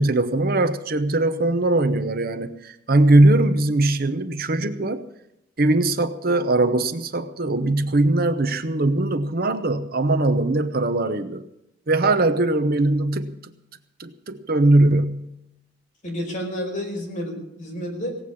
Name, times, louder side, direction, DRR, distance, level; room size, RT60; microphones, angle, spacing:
voice 1, 0.0-5.0 5.6-11.4 11.9-13.4 14.0-15.3, right 2 dB, 50° right, 10 dB, 0.9 m, -20 dB
voice 2, 16.0-18.2, equal, 45° left, 0 dB, 5.0 m, -30 dB
18.0 x 8.1 x 8.5 m, 0.79 s
head